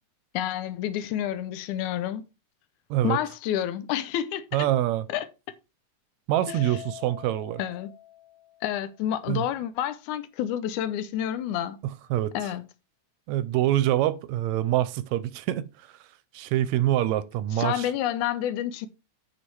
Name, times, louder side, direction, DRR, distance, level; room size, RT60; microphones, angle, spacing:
voice 1, 0.3-2.3 3.0-4.7 5.1-5.3 6.5-6.6 7.6-7.9 8.6-11.8 12.3-12.7 17.6-18.9, left 11 dB, 85° left, 2.2 m, -29 dB
voice 2, 4.5-5.1 6.3-7.6 9.3-9.4 11.8-12.5 13.3-16.0 16.3-17.9, right 13 dB, 80° right, 1.8 m, -25 dB
Keyboard (musical), 6.4-8.9, left 14 dB, 70° left, 2.3 m, -44 dB
8.5 x 5.2 x 4.6 m
omnidirectional pair, 3.4 m